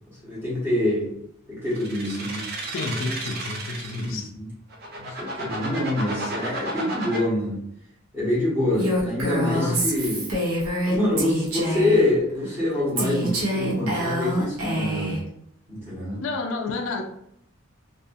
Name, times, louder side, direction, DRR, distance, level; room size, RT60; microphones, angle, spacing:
voice 1, 0.2-1.1 1.5-2.4 4.0-4.5 5.0-7.6 8.1-10.3 10.9-15.2 15.7-16.2, left 1 dB, 10° right, -8 dB, 1.0 m, -25 dB
sound 1, 1.7-4.2 4.7-7.2, right 2 dB, 45° right, 0.6 m, -33 dB
voice 2, 2.7-4.3 9.5-9.9 16.2-17.0, left 3 dB, 65° left, 3 dB, 0.3 m, -30 dB
Female speech woman speaking, 8.8-12.1 13.0-15.2, equal, 90° right, 0.8 m, -26 dB
2.5 x 2.4 x 2.5 m, 0.72 s
head